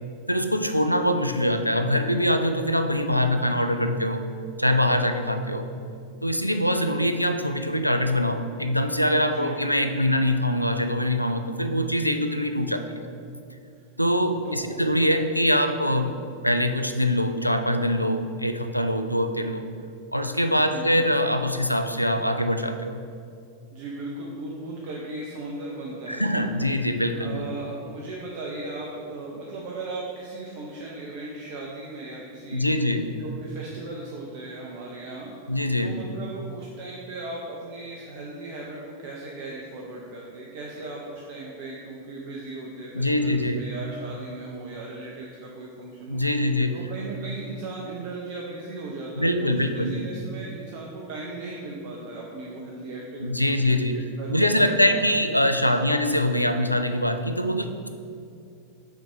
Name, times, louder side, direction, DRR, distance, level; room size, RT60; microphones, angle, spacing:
voice 1, 0.3-4.3 4.6-5.7 6.2-13.1 14.0-16.1 16.4-19.6 20.1-23.0 26.1-27.5 32.5-33.1 35.5-36.0 42.9-43.6 46.1-46.8 49.2-50.0 53.2-54.0 54.3-57.9, left 1 dB, 90° left, 7 dB, 0.3 m, -23 dB
voice 2, 14.4-14.8 20.5-21.0 23.7-26.5 27.2-32.8 33.2-46.4 46.7-55.2, right 2 dB, 50° right, -3 dB, 0.7 m, -37 dB
5.9 x 4.1 x 4.5 m, 2.4 s
figure-of-eight pair, 90°, 0 cm